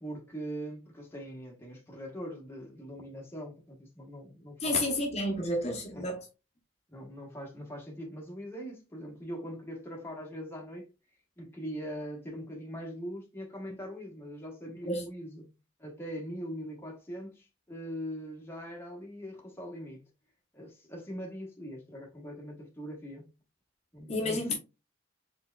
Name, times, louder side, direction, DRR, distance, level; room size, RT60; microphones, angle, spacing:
voice 1, 0.0-4.9 5.9-6.1 6.9-10.9 11.4-15.5 15.8-20.0 20.5-23.3 23.9-24.5, equal, 15° left, 1.0 m, -41 dB
voice 2, 4.6-6.2 14.9-15.1 24.1-24.5, left 1 dB, 35° left, 0.8 m, -30 dB
4.2 x 3.5 x 2.2 m
head